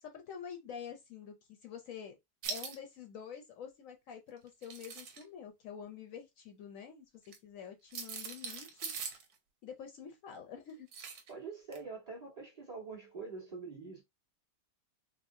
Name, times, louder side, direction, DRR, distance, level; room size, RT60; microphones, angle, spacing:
voice 1, 0.0-2.2 2.5-8.9 9.6-10.9, left 7 dB, 65° left, 1.0 m, -47 dB
sound 1, 2.4-2.8 4.5-5.2 7.3-7.4 7.9-9.2 10.9-11.3 11.7-11.8, right 5 dB, 80° right, 1.3 m, -41 dB
voice 2, 11.3-14.0, right 4 dB, 25° right, 1.3 m, -45 dB
4.2 x 2.1 x 2.6 m
omnidirectional pair, 1.6 m